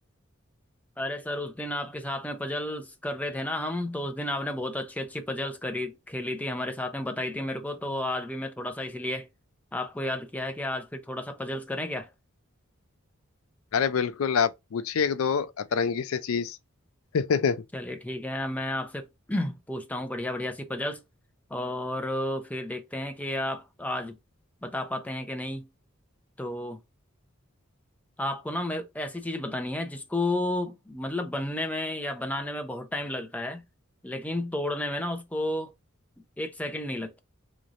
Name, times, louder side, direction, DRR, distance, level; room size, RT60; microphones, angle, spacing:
voice 1, 1.0-9.3 9.7-12.1 17.7-21.0 21.5-24.2 24.6-25.7 26.4-26.8 28.2-33.6 34.0-35.7 36.4-37.2, left 1 dB, 5° left, 0.6 m, -32 dB
voice 2, 13.7-16.6 17.1-17.6, left 6 dB, 80° left, 0.4 m, -26 dB
3.9 x 3.2 x 2.5 m
head